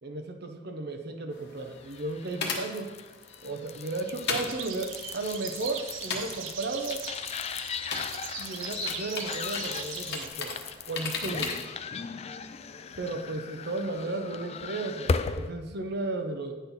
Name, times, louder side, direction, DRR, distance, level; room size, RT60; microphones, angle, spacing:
voice 1, 0.0-2.9 3.4-7.0 8.4-10.6 10.9-11.6 13.0-16.5, right 2 dB, 55° right, 6 dB, 0.8 m, -34 dB
sound 1, 1.3-11.8, left 4 dB, 60° left, 1.2 m, -39 dB
sound 2, 1.9-15.5, left 5 dB, 35° left, 0.3 m, -37 dB
sound 3, 4.5-10.3, right 9 dB, 85° right, 0.5 m, -40 dB
9.1 x 4.3 x 5.5 m, 1.2 s
head